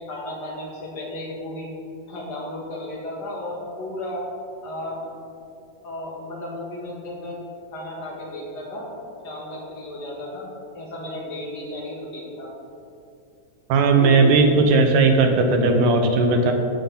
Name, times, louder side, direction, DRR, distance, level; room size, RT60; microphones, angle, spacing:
voice 1, 0.0-1.7 2.1-4.2 4.6-5.1 5.8-7.4 7.7-8.9 9.2-12.5 13.9-14.1, left 1 dB, 40° left, -3 dB, 2.1 m, -34 dB
voice 2, 13.7-16.5, right 3 dB, 85° right, 4 dB, 2.5 m, -17 dB
16.5 x 5.7 x 4.0 m, 2.6 s
omnidirectional pair, 3.5 m